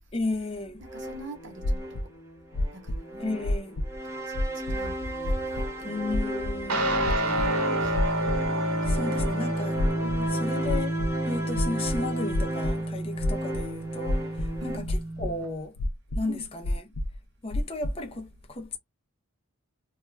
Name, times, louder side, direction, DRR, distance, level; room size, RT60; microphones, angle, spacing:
voice 1, 0.1-0.8 3.2-3.7 5.8-7.0 8.9-9.8 10.4-15.8 16.2-16.8 17.4-18.8, left 2 dB, 25° left, 0.5 m, -34 dB
sound 1, 0.8-14.8, right 1 dB, 10° right, 0.9 m, -35 dB
voice 2, 0.8-2.1 2.7-3.6 4.0-6.1 6.9-8.3 8.8-8.9 10.0-10.5 14.6-15.0 16.2-16.5, equal, 55° right, 0.9 m, -43 dB
sound 2, 1.6-2.0 2.5-3.0 3.4-4.0 4.3-4.8 5.2-5.7 6.1-6.5 7.0-7.5 7.9-8.5 8.8-9.3 9.8-10.3 10.6-11.1 11.5-12.7 13.2-13.6 14.1-14.6 14.9-15.3 15.8-16.2 16.6-17.2 17.5-17.9, left 1 dB, 75° left, 0.5 m, -28 dB
Guitar, 6.7-15.5, right 1 dB, 85° right, 0.9 m, -29 dB
2.3 x 2.2 x 3.1 m
head